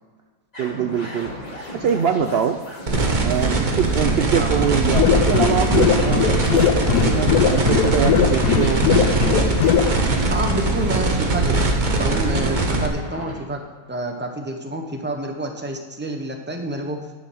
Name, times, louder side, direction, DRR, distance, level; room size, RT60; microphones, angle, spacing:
sound 1, 0.5-13.4, left 1 dB, 25° left, 2.4 m, -37 dB
voice 1, 0.6-1.3 1.7-2.6 3.2-8.9, right 8 dB, 80° right, 6 dB, 0.5 m, -23 dB
sound 2, 2.9-12.9, right 3 dB, 35° right, 1.1 m, -21 dB
sound 3, 4.9-9.9, left 9 dB, 90° left, 1.2 m, -20 dB
voice 2, 10.3-11.6 12.0-13.6 13.9-17.0, right 1 dB, 10° right, 3 dB, 0.8 m, -28 dB
10.5 x 6.2 x 6.3 m, 1.5 s
omnidirectional pair, 1.7 m